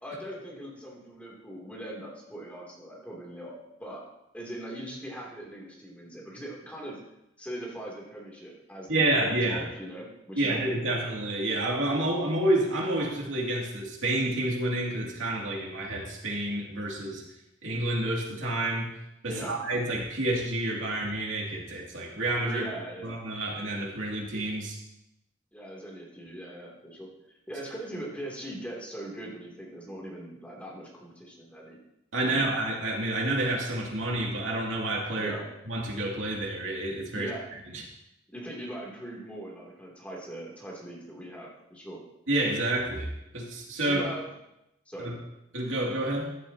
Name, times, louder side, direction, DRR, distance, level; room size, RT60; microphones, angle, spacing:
voice 1, 0.0-4.0 4.3-7.0 7.4-11.0 19.3-19.6 22.5-23.2 25.5-31.8 32.2-32.5 35.2-35.5 37.1-37.5 38.3-42.0 43.8-44.3 44.9-45.1, right 1 dB, 5° left, -3 dB, 2.8 m, -40 dB
voice 2, 8.9-9.7 10.4-17.2 17.6-18.9 19.2-22.6 23.0-24.8 32.1-35.3 35.7-37.3 37.7-37.8 42.3-44.0 45.0-45.1 45.5-46.3, right 1 dB, 90° right, -2 dB, 2.6 m, -29 dB
14.0 x 11.5 x 2.9 m, 0.87 s
head